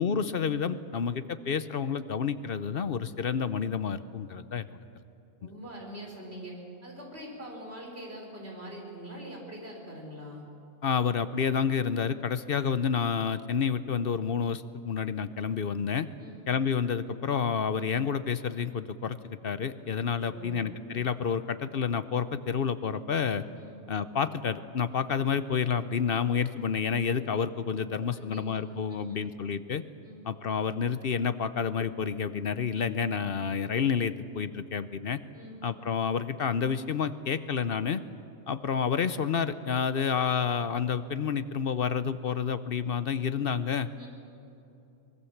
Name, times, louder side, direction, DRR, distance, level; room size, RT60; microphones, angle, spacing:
voice 1, 0.0-4.8 10.8-16.1 16.5-23.4 23.9-29.8 30.3-35.2 35.6-38.0 38.5-43.9, left 6 dB, 55° left, 13 dB, 0.8 m, -29 dB
voice 2, 5.4-10.4 16.2-16.4 20.2-20.6 23.6-23.8 28.1-28.8 29.1-29.2 30.0-30.3 35.3-35.6 44.0-44.1, right 1 dB, 50° right, 0 dB, 5.1 m, -43 dB
23.5 x 21.0 x 7.2 m, 2.7 s
omnidirectional pair, 1.4 m